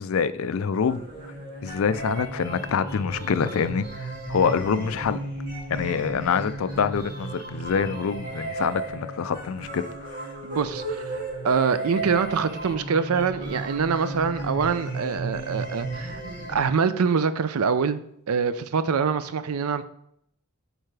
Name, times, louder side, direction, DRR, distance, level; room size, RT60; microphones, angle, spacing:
voice 1, 0.0-1.3 1.6-5.2 5.7-10.3, left 6 dB, 70° left, 13 dB, 0.4 m, -26 dB
sound 1, 0.8-16.6, right 2 dB, 35° right, 2.3 m, -35 dB
voice 2, 10.4-16.2 16.5-18.0 18.3-19.9, right 5 dB, 85° right, 13 dB, 0.5 m, -25 dB
8.0 x 4.6 x 3.3 m, 0.71 s
head